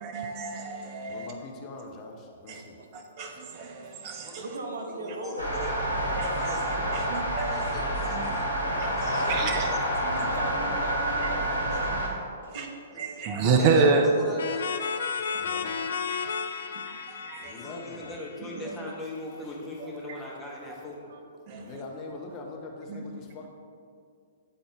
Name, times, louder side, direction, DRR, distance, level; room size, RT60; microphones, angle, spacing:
voice 1, 0.0-1.3 2.5-2.6 2.9-4.4 5.5-5.7 6.2-7.7 8.1-8.2 8.8-9.7 10.0-10.3 12.5-12.7 13.0-14.1 15.3-15.5 16.8-17.6 18.4-18.8 19.8-20.2 21.5-21.7 22.9-23.0, right 4 dB, 35° right, 4 dB, 0.5 m, -29 dB
voice 2, 1.1-2.8 9.1-9.8 10.0-10.8 13.3-13.7 15.4-15.7 17.5-18.2 19.5-19.6 21.6-23.5, left 3 dB, 30° left, 1 dB, 0.9 m, -43 dB
voice 3, 4.4-5.3 10.1-12.0 12.4-12.7 15.2-15.3 21.1-21.2, right 2 dB, 60° right, 1 dB, 1.0 m, -38 dB
voice 4, 4.9-5.8 6.4-8.5 8.9-9.7 12.9-13.0 13.3-14.7 17.4-21.1, left 1 dB, 5° left, -5 dB, 1.3 m, -41 dB
sound 1, 5.4-12.1, right 1 dB, 85° right, 1.7 m, -28 dB
sound 2, 14.4-19.0, left 6 dB, 60° left, 0.4 m, -33 dB
9.4 x 4.0 x 3.4 m, 2.3 s
figure-of-eight pair, 115°, 0 cm